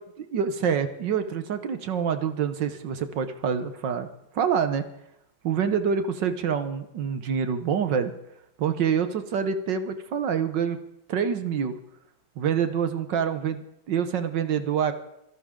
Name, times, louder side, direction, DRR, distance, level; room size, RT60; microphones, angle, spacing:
voice 1, 0.2-4.1 4.3-4.8 5.4-8.1 8.6-10.8 11.1-11.7 12.4-14.9, right 7 dB, 60° right, 10 dB, 1.5 m, -26 dB
25.0 x 12.5 x 3.7 m, 0.81 s
omnidirectional pair, 2.4 m